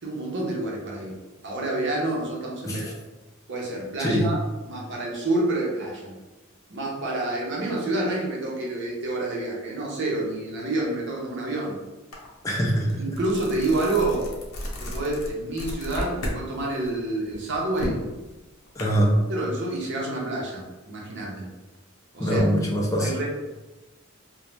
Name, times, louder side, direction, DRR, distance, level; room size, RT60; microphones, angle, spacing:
voice 1, 0.0-2.9 3.5-4.4 4.7-6.1 6.7-11.8 13.0-14.3 14.8-18.0 18.9-19.0 19.3-21.5 22.1-22.4 23.0-23.3, right 2 dB, 55° right, -2 dB, 0.7 m, -28 dB
sound 1, 12.1-12.3 12.7-16.4 16.8-18.8, equal, 85° left, 0.6 m, -34 dB
voice 2, 12.4-13.2 18.8-19.2 22.2-23.1, equal, 15° left, -2 dB, 0.4 m, -23 dB
2.5 x 2.0 x 3.1 m, 1.1 s
head